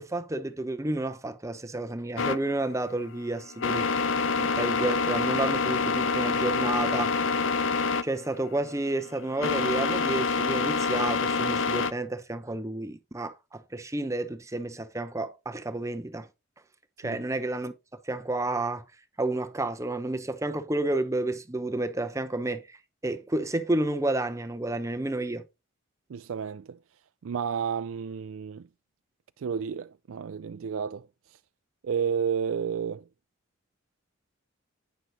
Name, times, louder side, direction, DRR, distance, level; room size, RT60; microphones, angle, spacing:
voice 1, 0.0-3.9 4.4-7.2 8.0-16.3 17.0-17.7 18.0-18.8 19.2-22.8 23.0-25.4, right 2 dB, 15° right, 0.7 m, -30 dB
sound 1, 2.2-11.9, left 4 dB, 60° left, 0.8 m, -27 dB
voice 2, 26.1-26.8 27.2-28.7 29.4-31.4 31.8-33.0, right 7 dB, 70° right, 0.4 m, -31 dB
9.3 x 6.3 x 4.0 m
head